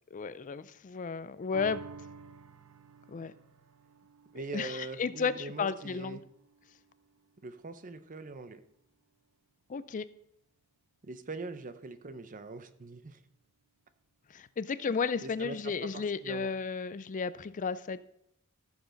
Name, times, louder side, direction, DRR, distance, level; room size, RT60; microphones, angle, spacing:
voice 1, 0.1-1.8 3.1-3.3 4.5-6.2 9.7-10.0 14.3-18.0, left 5 dB, 35° left, 16 dB, 0.4 m, -33 dB
sound 1, 1.5-8.2 8.6-8.7, right 5 dB, 80° right, 0.7 m, -52 dB
voice 2, 4.3-6.2 7.4-8.6 11.0-13.2 15.2-16.5, right 3 dB, 35° right, 11 dB, 0.7 m, -42 dB
14.5 x 7.1 x 3.9 m, 0.75 s
head